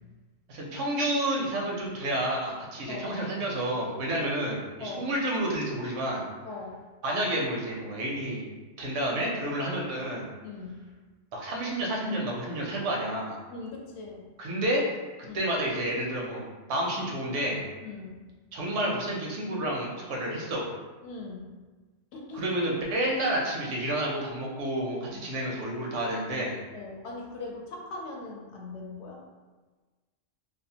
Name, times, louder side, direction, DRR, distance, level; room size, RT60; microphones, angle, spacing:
voice 1, 0.5-6.2 7.0-8.5 8.8-10.3 11.3-13.4 14.4-14.8 15.3-16.4 16.7-17.6 18.5-20.6 22.3-26.6, right 1 dB, 85° right, -2 dB, 1.0 m, -30 dB
voice 2, 6.4-6.8 10.4-10.8 13.5-14.3 15.2-15.5 17.8-18.3 21.0-21.6 22.1-22.5 25.1-25.3 26.7-29.2, left 3 dB, 70° left, -1 dB, 0.8 m, -40 dB
2.7 x 2.1 x 2.7 m, 1.3 s
omnidirectional pair, 1.2 m